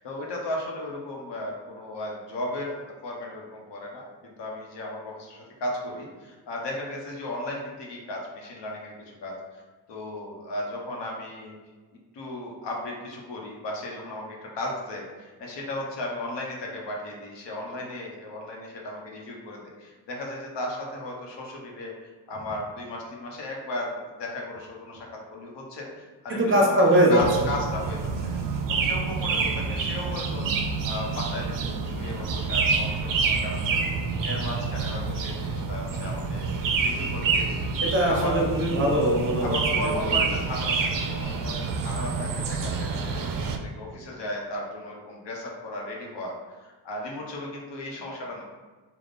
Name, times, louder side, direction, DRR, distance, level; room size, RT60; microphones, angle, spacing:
voice 1, 0.0-9.6 9.9-11.5 12.1-26.7 27.1-28.4 28.7-33.6 33.9-38.3 39.4-48.4, left 1 dB, 70° left, -1 dB, 1.1 m, -35 dB
voice 2, 26.3-27.5 37.8-39.5 39.8-40.1, right 1 dB, 30° right, -2 dB, 1.0 m, -21 dB
sound 1, 27.2-43.6, right 4 dB, 50° right, 0.5 m, -28 dB
3.6 x 2.4 x 4.0 m, 1.3 s
cardioid pair, 85°, 43 cm